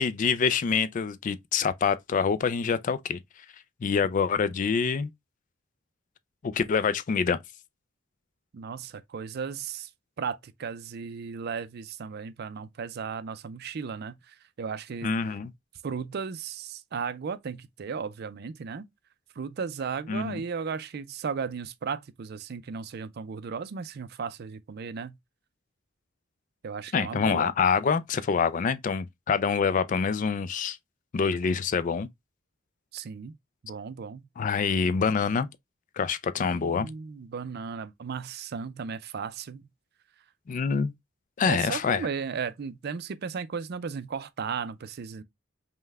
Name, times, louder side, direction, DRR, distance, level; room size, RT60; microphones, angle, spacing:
voice 1, 0.0-3.2 3.8-5.1 6.4-7.4 15.0-15.5 20.1-20.4 26.9-30.8 31.1-32.1 34.4-35.5 36.0-36.9 40.5-40.9 41.4-42.1, left 5 dB, 40° left, 0.3 m, -26 dB
voice 2, 8.5-9.9 10.2-15.1 15.8-18.9 19.4-25.2 26.6-27.5 32.9-33.4 33.6-34.3 36.4-39.6 41.4-45.2, right 6 dB, 50° right, 0.4 m, -35 dB
5.4 x 2.2 x 3.3 m
head